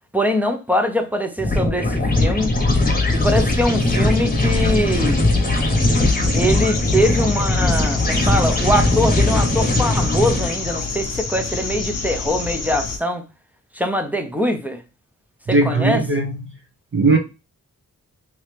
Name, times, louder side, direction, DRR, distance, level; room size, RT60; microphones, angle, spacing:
voice 1, 0.1-2.5 3.1-5.2 6.3-13.2 13.7-14.8 15.5-16.0, equal, 5° right, 0.8 m, -22 dB
sound 1, 1.4-10.8, left 2 dB, 25° left, 1.1 m, -19 dB
sound 2, 5.7-13.0, left 4 dB, 50° left, 0.9 m, -28 dB
voice 2, 15.5-16.5 16.9-17.2, right 3 dB, 35° right, 0.9 m, -18 dB
3.0 x 2.8 x 3.3 m
cardioid pair, 60°, 33 cm